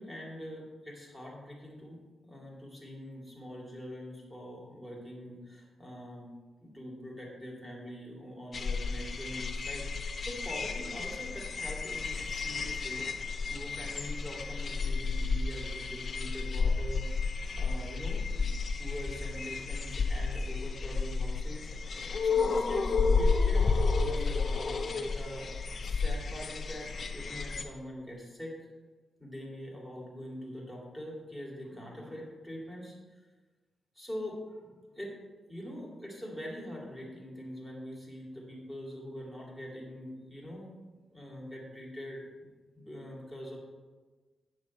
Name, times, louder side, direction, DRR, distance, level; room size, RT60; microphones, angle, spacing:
voice 1, 0.0-6.3 6.6-13.1 13.5-18.5 18.8-25.5 25.8-28.7 29.2-33.2 34.0-35.2 35.5-40.7 41.1-43.6, equal, 5° right, -3 dB, 2.4 m, -44 dB
sound 1, 8.5-27.6, left 4 dB, 45° left, 0.8 m, -31 dB
9.2 x 7.2 x 4.2 m, 1.3 s
wide cardioid pair, 135°, 0 cm